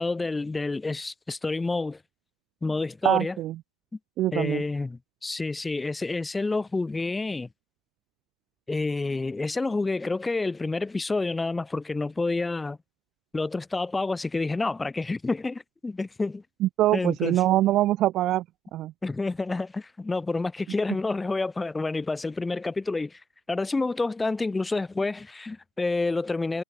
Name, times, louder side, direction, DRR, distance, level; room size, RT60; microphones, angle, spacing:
voice 1, 0.0-2.0 2.6-3.4 4.3-7.5 8.7-12.8 13.3-16.4 16.9-17.4 19.0-23.2 23.5-26.6, left 3 dB, 10° left, 6.5 m, -29 dB
voice 2, 3.0-3.5 4.2-4.6 16.6-18.4 18.7-18.9, right 14 dB, 30° right, 1.3 m, -23 dB
figure-of-eight pair, 110°, 0 cm